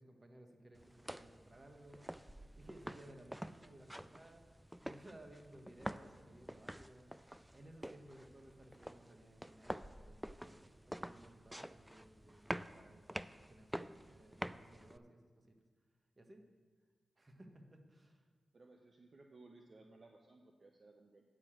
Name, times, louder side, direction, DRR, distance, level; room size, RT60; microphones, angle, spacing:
voice 1, 0.0-2.2 2.5-4.4 4.8-7.1 7.5-12.4 12.7-15.6 16.1-16.4 17.2-18.2, right 1 dB, 35° right, 4 dB, 1.4 m, -59 dB
sound 1, 0.8-15.0, equal, 5° right, 0.3 m, -48 dB
voice 2, 18.5-21.2, right 2 dB, 55° right, 3 dB, 0.7 m, -61 dB
9.2 x 5.0 x 7.3 m, 1.5 s
cardioid pair, 45°, 0 cm